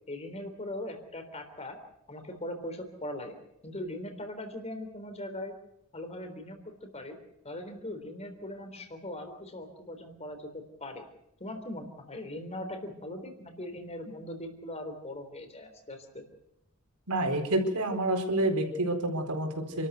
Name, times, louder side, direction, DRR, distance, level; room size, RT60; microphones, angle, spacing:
voice 1, 0.1-1.8 2.1-3.4 3.6-5.5 5.9-7.2 7.4-11.1 11.4-16.2, left 1 dB, 30° left, 7 dB, 3.6 m, -40 dB
voice 2, 17.1-19.9, right 1 dB, 90° right, 4 dB, 4.4 m, -28 dB
28.5 x 13.5 x 8.0 m, 0.83 s
head